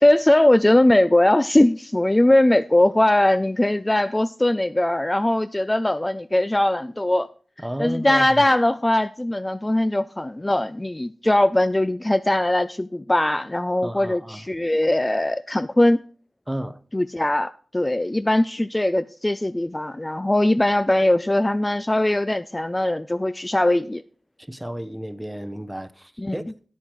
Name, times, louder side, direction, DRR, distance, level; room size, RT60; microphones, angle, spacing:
voice 1, 0.0-7.3 7.8-16.0 16.9-24.0 26.2-26.4, left 1 dB, 20° left, 0.4 m, -20 dB
voice 2, 7.6-8.4 13.8-14.4 16.5-16.8 24.5-26.7, equal, 10° right, 0.7 m, -32 dB
8.9 x 8.5 x 4.5 m
cardioid pair, 50°, 0 cm